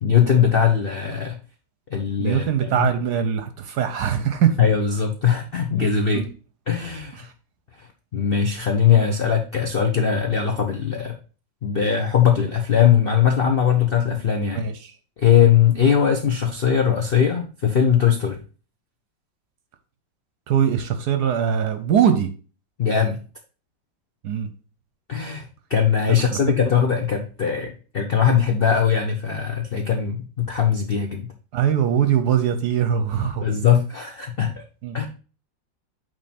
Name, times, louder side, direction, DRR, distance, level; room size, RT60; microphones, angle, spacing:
voice 1, 0.0-1.4 1.9-2.9 4.6-6.2 6.7-7.3 7.8-7.9 8.1-11.2 11.6-14.7 15.2-18.4 22.8-23.2 25.1-31.3 33.4-34.6 34.9-35.1, left 8 dB, 75° left, 0.5 m, -20 dB
voice 2, 2.2-4.6 6.1-6.3 7.2-7.3 14.5-14.9 20.5-22.3 24.2-24.5 26.3-26.6 31.5-33.4 34.8-35.0, right 8 dB, 65° right, 1.2 m, -22 dB
8.8 x 3.6 x 4.2 m
omnidirectional pair, 2.1 m